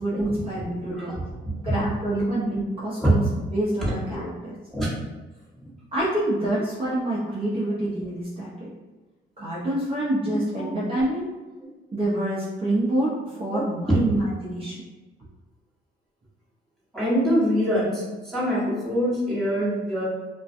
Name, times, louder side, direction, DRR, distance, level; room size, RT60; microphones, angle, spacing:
voice 1, 0.0-1.1 1.6-3.2 3.5-4.5 5.9-8.7 9.4-11.3 11.9-14.8, right 1 dB, 30° right, -7 dB, 0.6 m, -26 dB
voice 2, 0.9-1.6 3.0-3.1 3.8-4.2 4.7-4.9 5.6-5.7 10.3-10.7 11.6-11.7 13.5-14.0 16.9-20.1, equal, ahead, -9 dB, 1.2 m, -25 dB
2.4 x 2.2 x 2.5 m, 1.2 s
cardioid pair, 90°, 20 cm